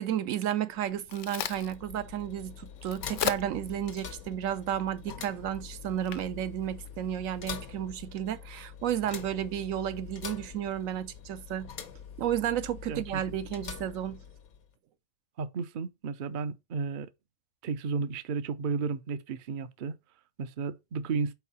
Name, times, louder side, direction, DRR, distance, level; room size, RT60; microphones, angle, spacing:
voice 1, 0.0-11.7 12.2-14.2, right 10 dB, 70° right, 1.0 m, -32 dB
Crack, 0.7-7.6, left 10 dB, 65° left, 0.9 m, -40 dB
sound 1, 1.4-14.7, left 7 dB, 85° left, 1.5 m, -45 dB
voice 2, 12.9-13.4 15.4-17.1 17.6-20.0 20.4-21.3, right 5 dB, 50° right, 0.6 m, -33 dB
4.6 x 4.6 x 5.4 m
omnidirectional pair, 1.5 m